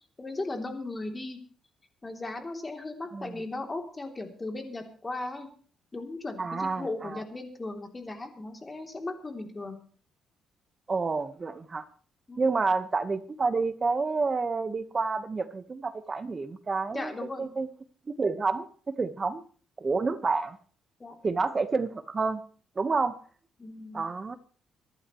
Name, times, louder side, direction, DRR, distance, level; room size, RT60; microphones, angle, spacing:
voice 1, 0.2-1.4 2.0-5.5 5.9-9.8 12.3-12.4 16.9-17.5 21.0-21.1 23.6-24.0, left 2 dB, 20° left, 3 dB, 3.1 m, -37 dB
voice 2, 6.4-7.2 10.9-11.8 12.4-17.7 18.1-19.4 19.8-20.6 21.2-22.4 22.8-23.2 23.9-24.4, right 4 dB, 30° right, 10 dB, 1.3 m, -29 dB
25.5 x 11.5 x 3.2 m, 0.43 s
cardioid pair, 100°, 0 cm